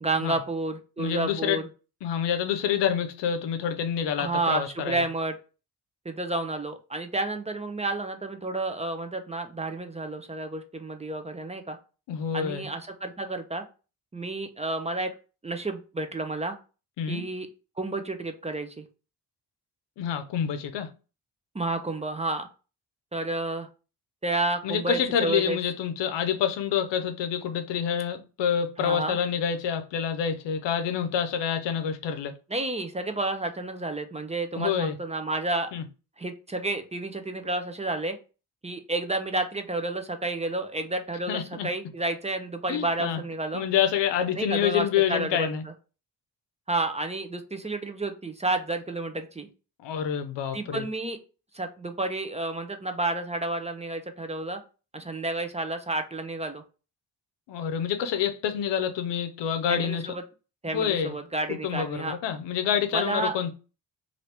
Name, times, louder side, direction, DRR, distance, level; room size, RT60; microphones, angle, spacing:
voice 1, 0.0-1.6 4.2-5.3 6.0-11.8 12.3-13.6 14.1-15.1 15.4-16.6 17.1-17.5 17.8-18.8 21.5-22.5 23.1-23.7 24.2-25.6 28.8-29.2 32.5-35.7 36.2-38.2 38.6-43.6 44.4-45.7 46.7-49.5 50.5-51.2 51.5-54.6 54.9-56.6 59.7-60.2 60.6-62.2 62.9-63.3, right 2 dB, 15° right, 0.5 m, -30 dB
voice 2, 1.0-1.6 2.0-5.0 12.1-12.7 17.0-17.2 20.0-20.9 24.6-32.3 34.5-35.0 35.7-35.8 41.3-41.7 42.7-43.2 43.5-45.6 49.8-50.9 57.5-60.0 60.7-61.2 61.5-63.5, left 8 dB, 85° left, 0.6 m, -27 dB
2.8 x 2.6 x 3.3 m
cardioid pair, 70°, 41 cm